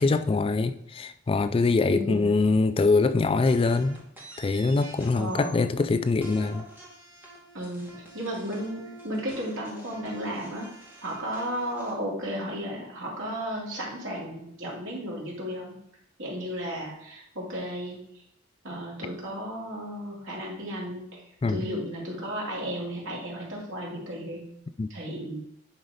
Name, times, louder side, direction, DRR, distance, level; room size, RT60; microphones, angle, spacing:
voice 1, 0.0-4.0 4.4-6.7 21.4-21.7 24.8-24.9, left 3 dB, 25° left, 0.3 m, -23 dB
voice 2, 1.9-2.4 5.1-5.7 7.5-10.7 11.0-15.7 16.2-18.0 18.6-21.2 21.5-24.4 24.9-25.4, equal, 70° right, 3.2 m, -34 dB
sound 1, 3.5-5.8 6.2-11.9, right 1 dB, 10° right, 2.2 m, -47 dB
10.5 x 4.0 x 5.1 m
head